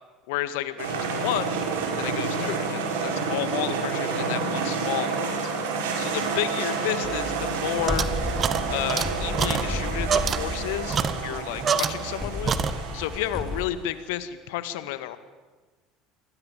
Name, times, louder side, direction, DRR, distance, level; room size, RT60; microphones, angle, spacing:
voice 1, 0.3-1.6 2.0-5.4 6.0-8.1 8.7-15.2, left 13 dB, 70° left, 13 dB, 1.8 m, -31 dB
sound 1, 0.8-13.9, right 4 dB, 75° right, 5.0 m, -29 dB
sound 2, 6.5-6.6 7.9-13.7, left 1 dB, 20° left, 2.9 m, -33 dB
sound 3, 7.0-12.2 12.5-13.1, right 6 dB, 35° right, 1.8 m, -28 dB
27.5 x 22.0 x 9.0 m, 1.3 s
hypercardioid pair, 65°, 0 cm